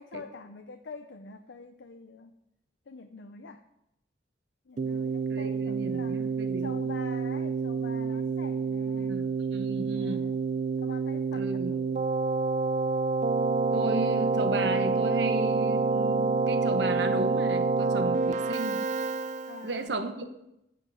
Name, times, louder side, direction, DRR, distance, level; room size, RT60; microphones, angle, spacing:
voice 1, 0.0-2.3 2.9-3.6 4.7-6.3 6.6-9.4 9.9-10.4 10.8-12.1 19.5-19.9, left 4 dB, 80° left, 7 dB, 0.6 m, -45 dB
Keyboard (musical), 4.8-19.8, right 4 dB, 40° right, 0.3 m, -28 dB
voice 2, 5.3-6.7 9.0-10.3 11.3-11.7 13.7-18.8 19.6-20.5, right 2 dB, 75° right, 7 dB, 1.1 m, -35 dB
9.5 x 5.8 x 7.7 m, 0.85 s
head